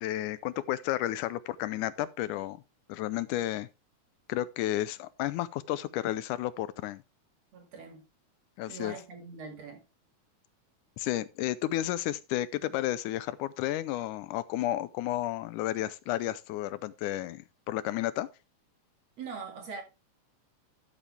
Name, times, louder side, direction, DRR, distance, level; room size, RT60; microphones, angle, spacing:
voice 1, 0.0-2.6 2.9-3.7 4.3-7.0 8.6-9.0 11.0-18.3, left 14 dB, 80° left, 2.1 m, -32 dB
voice 2, 7.5-8.0 8.7-9.8 19.2-19.8, right 4 dB, 55° right, 3.3 m, -42 dB
12.0 x 7.1 x 3.4 m
omnidirectional pair, 3.6 m